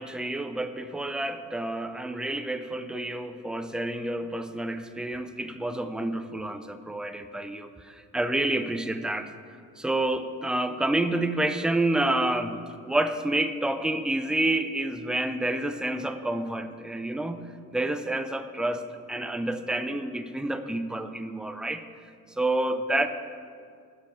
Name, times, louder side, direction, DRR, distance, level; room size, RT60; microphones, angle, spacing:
voice 1, 0.0-9.3 9.8-12.6 12.9-18.8 19.1-21.8 22.4-23.1, right 1 dB, 5° right, 9 dB, 0.3 m, -29 dB
6.4 x 5.4 x 6.4 m, 2.2 s
cardioid pair, 90°, 30 cm